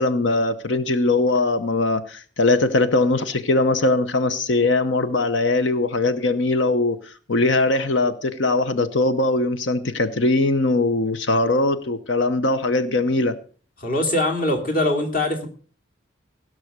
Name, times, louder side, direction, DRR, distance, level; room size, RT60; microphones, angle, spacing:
voice 1, 0.0-13.3, left 2 dB, 75° left, 11 dB, 0.8 m, -21 dB
voice 2, 13.8-15.5, left 1 dB, 45° left, 4 dB, 2.7 m, -22 dB
17.0 x 6.3 x 6.5 m, 0.42 s
head